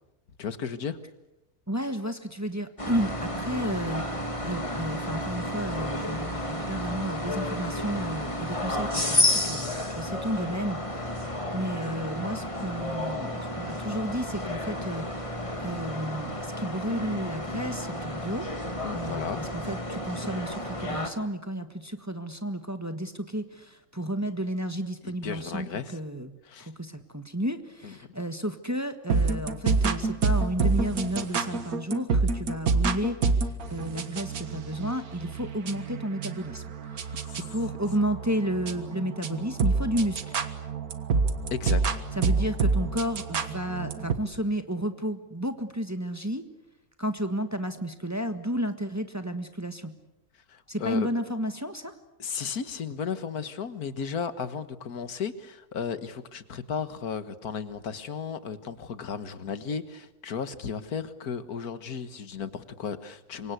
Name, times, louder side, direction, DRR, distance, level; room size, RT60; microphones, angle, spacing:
voice 1, 0.4-1.0 18.8-19.4 25.2-26.0 26.5-26.7 27.8-27.9 37.2-37.4 41.5-42.0 50.5-51.1 52.2-63.5, left 6 dB, 85° left, 12 dB, 1.9 m, -34 dB
voice 2, 1.7-11.1 11.5-18.5 18.9-25.7 25.9-36.7 36.9-40.3 42.1-46.5 47.0-49.9 50.7-51.9, equal, 10° right, 8 dB, 1.4 m, -32 dB
sound 1, 2.8-21.1, left 1 dB, 20° left, 2.2 m, -31 dB
sound 2, 29.1-44.1, right 4 dB, 75° right, 2.0 m, -28 dB
27.5 x 24.0 x 8.2 m, 0.91 s
omnidirectional pair, 1.6 m